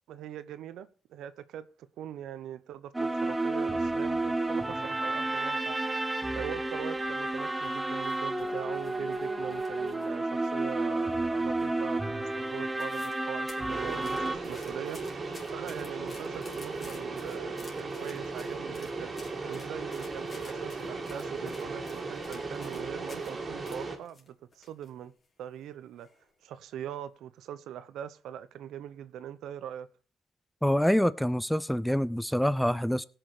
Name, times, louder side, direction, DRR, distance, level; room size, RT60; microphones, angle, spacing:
voice 1, 0.1-1.7 2.0-5.8 6.4-15.0 15.5-19.1 19.5-25.1 25.4-26.1 26.4-29.9, right 10 dB, 80° right, 0.8 m, -42 dB
sound 1, 2.9-14.4, right 2 dB, 15° right, 1.3 m, -31 dB
sound 2, 7.4-10.1 10.4-11.2 11.6-11.9 12.3-12.4 12.6-13.2 13.5-23.3 23.7-24.9 25.2-25.3 26.0-26.3 26.7-26.9, left 3 dB, 35° left, 3.5 m, -53 dB
sound 3, 13.7-24.0, right 3 dB, 40° right, 2.4 m, -37 dB
voice 2, 30.6-33.1, equal, ahead, 0.6 m, -26 dB
18.0 x 6.1 x 4.9 m
cardioid pair, 90°, 0 cm